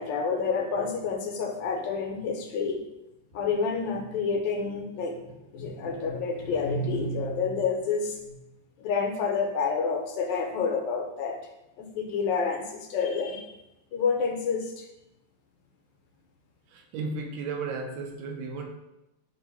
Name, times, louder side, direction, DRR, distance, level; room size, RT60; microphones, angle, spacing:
voice 1, 0.0-2.8 3.3-5.2 5.5-8.4 8.8-11.4 11.8-13.5 13.9-14.9, left 5 dB, 75° left, 1.2 m, -29 dB
voice 2, 16.7-18.7, right 4 dB, 80° right, 1.3 m, -34 dB
3.5 x 2.5 x 4.5 m
omnidirectional pair, 2.1 m